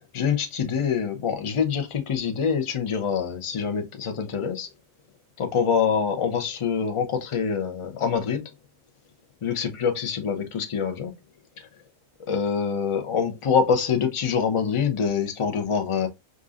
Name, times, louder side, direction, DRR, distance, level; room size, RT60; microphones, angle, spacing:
voice 1, 0.1-4.7 5.4-8.4 9.4-11.1 12.3-16.1, left 6 dB, 45° left, 0.4 m, -25 dB
5.2 x 2.5 x 2.4 m
omnidirectional pair, 1.4 m